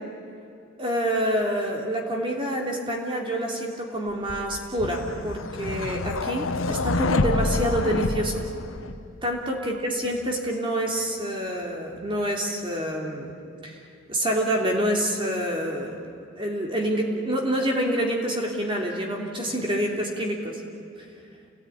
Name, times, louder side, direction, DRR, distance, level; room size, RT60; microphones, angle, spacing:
voice 1, 0.8-8.4 9.2-13.3 13.6-13.8 14.1-16.0 16.4-20.6, equal, 25° right, 1 dB, 3.1 m, -27 dB
sound 1, 4.3-9.2, left 3 dB, 70° left, 1.0 m, -27 dB
29.0 x 18.5 x 10.0 m, 2.6 s
head